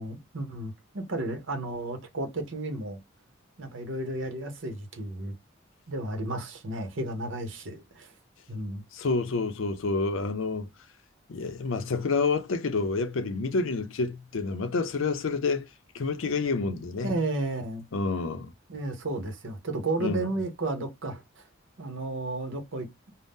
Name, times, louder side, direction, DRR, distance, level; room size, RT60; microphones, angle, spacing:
voice 1, 0.0-3.0 3.6-5.3 5.9-8.1 8.5-8.8 17.0-17.8 18.7-21.5 21.8-22.9, right 2 dB, 65° right, 0.8 m, -33 dB
voice 2, 8.9-10.7 11.3-15.7 15.9-17.1 17.9-18.5 20.0-20.3, left 4 dB, 70° left, 0.5 m, -28 dB
2.6 x 2.1 x 3.4 m
head